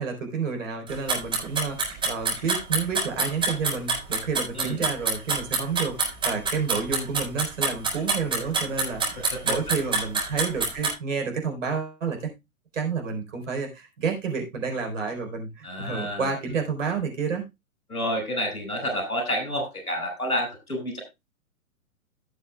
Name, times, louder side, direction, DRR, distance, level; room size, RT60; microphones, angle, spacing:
voice 1, 0.0-6.0 6.2-12.3 12.7-17.4, right 5 dB, 60° right, 4 dB, 4.2 m, -30 dB
sound 1, 0.9-10.9, right 3 dB, 10° right, 5.3 m, -25 dB
voice 2, 15.6-16.3 17.9-21.0, equal, 80° left, 5 dB, 5.9 m, -29 dB
16.5 x 7.2 x 2.3 m, 0.22 s
figure-of-eight pair, 115°, 43 cm